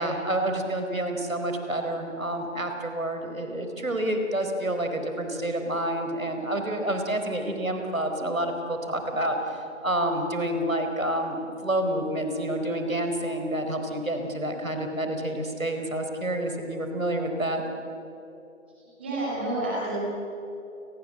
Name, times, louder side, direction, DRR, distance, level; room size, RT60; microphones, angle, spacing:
voice 1, 0.0-17.6, right 1 dB, 75° right, 5 dB, 4.7 m, -28 dB
voice 2, 19.0-20.0, right 2 dB, 10° right, -7 dB, 2.7 m, -29 dB
29.5 x 20.0 x 7.9 m, 3.0 s
figure-of-eight pair, 170°, 41 cm